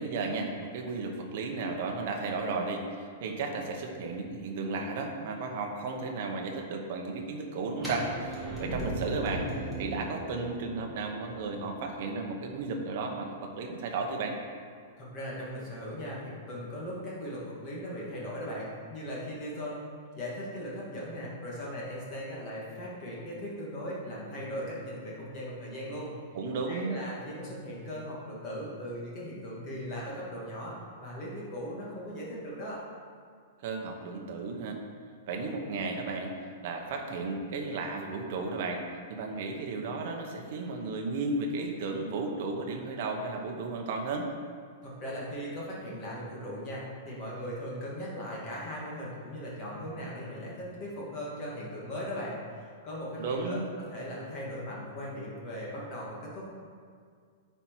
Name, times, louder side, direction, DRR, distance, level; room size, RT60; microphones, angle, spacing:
voice 1, 0.0-9.5 9.8-14.4 26.3-27.0 33.6-34.8 35.3-36.3 36.6-38.8 39.1-44.3 53.2-53.6, right 3 dB, 40° right, 2 dB, 1.0 m, -34 dB
sound 1, 7.8-13.6, right 1 dB, ahead, 1.5 m, -38 dB
voice 2, 15.0-19.9 20.2-26.1 26.7-30.7 31.0-32.8 44.8-56.4, equal, 25° left, -5 dB, 1.8 m, -38 dB
9.7 x 4.6 x 4.6 m, 2.1 s
supercardioid pair, 180°, 0 cm